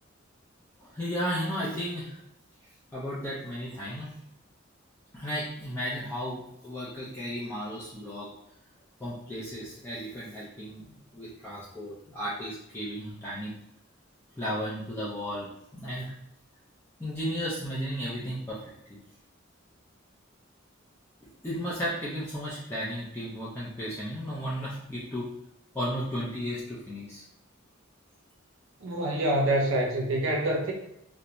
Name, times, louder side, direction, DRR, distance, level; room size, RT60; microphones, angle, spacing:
voice 1, 0.8-2.2 2.9-4.1 5.1-8.3 9.0-13.5 14.4-16.1 17.0-18.6 18.9-19.0 21.4-25.3 25.7-27.2, equal, 10° left, -9 dB, 0.5 m, -34 dB
voice 2, 28.8-30.7, right 1 dB, 70° right, -1 dB, 0.6 m, -26 dB
2.5 x 2.1 x 2.9 m, 0.81 s
head